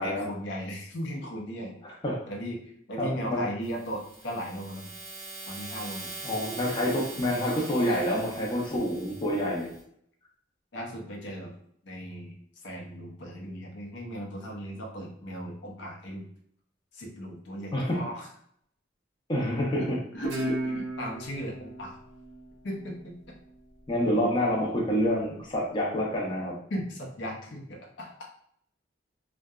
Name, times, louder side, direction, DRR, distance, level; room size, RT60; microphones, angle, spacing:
voice 1, 0.0-1.8 2.3-5.0 5.5-6.1 10.7-11.5 11.8-12.3 12.6-16.3 16.9-18.3 19.8-22.0 22.6-23.1 24.1-24.3 26.7-28.3, equal, 70° left, 0 dB, 0.6 m, -37 dB
voice 2, 3.0-3.4 6.2-9.7 17.7-18.0 19.3-20.0 23.9-26.6, equal, 25° left, -2 dB, 0.5 m, -27 dB
sound 1, 3.6-9.8, right 3 dB, 40° right, 0.7 m, -42 dB
Guitar, 20.2-23.5, right 1 dB, 85° right, 0.6 m, -35 dB
2.7 x 2.2 x 2.3 m, 0.68 s
head